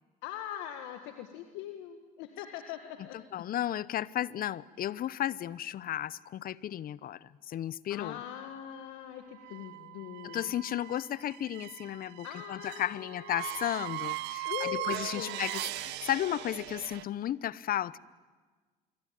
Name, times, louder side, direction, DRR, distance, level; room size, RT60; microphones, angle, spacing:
voice 1, 0.2-3.4 7.9-10.6 12.2-13.6 14.4-15.4, left 11 dB, 80° left, 7 dB, 1.8 m, -42 dB
voice 2, 3.3-8.2 10.3-18.0, left 12 dB, 55° left, 21 dB, 0.8 m, -34 dB
sound 1, 9.3-17.0, right 17 dB, 70° right, 1.2 m, -39 dB
26.5 x 23.5 x 9.4 m, 1.4 s
hypercardioid pair, 70°, 18 cm